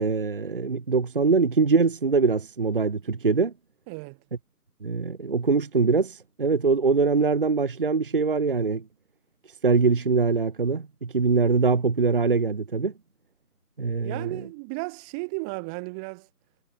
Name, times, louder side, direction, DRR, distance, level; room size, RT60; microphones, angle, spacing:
voice 1, 0.0-3.5 4.8-8.8 9.6-12.9 13.8-14.3, right 4 dB, 35° right, 1.4 m, -23 dB
voice 2, 3.9-4.2 14.0-16.3, right 33 dB, 5° right, 1.5 m, -34 dB
figure-of-eight pair, 155°, 47 cm